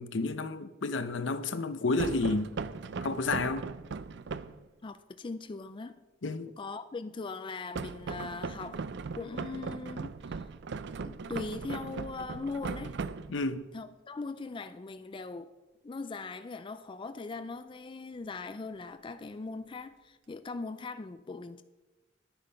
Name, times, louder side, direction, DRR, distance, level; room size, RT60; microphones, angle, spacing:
voice 1, 0.0-2.5 3.0-3.7 6.2-6.5 13.3-13.6, left 3 dB, 70° left, 0.7 m, -31 dB
sound 1, 2.0-4.6 7.8-13.6, right 4 dB, 65° right, 0.5 m, -38 dB
voice 2, 4.8-5.9 6.6-8.8 9.2-10.4 11.0-13.0 13.5-15.5 15.8-21.6, left 3 dB, 25° left, 0.4 m, -40 dB
11.0 x 8.8 x 5.6 m
head